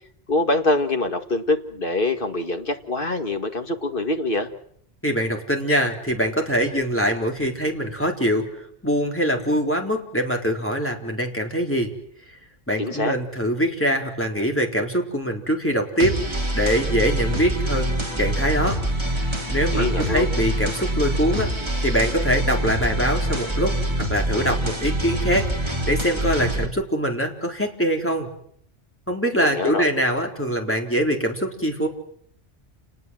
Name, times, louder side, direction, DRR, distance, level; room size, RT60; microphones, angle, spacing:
voice 1, 0.3-4.5 12.8-13.1 19.7-20.3 29.4-29.9, left 2 dB, 55° left, 6 dB, 2.3 m, -24 dB
voice 2, 5.0-11.9 12.3-12.4 12.7-18.8 19.1-19.2 19.5-21.5 21.8-28.3 29.1-31.9, equal, 10° left, 2 dB, 4.2 m, -23 dB
sound 1, 16.0-26.7, right 1 dB, 25° right, 3.1 m, -25 dB
29.5 x 20.0 x 7.8 m, 0.66 s
omnidirectional pair, 1.1 m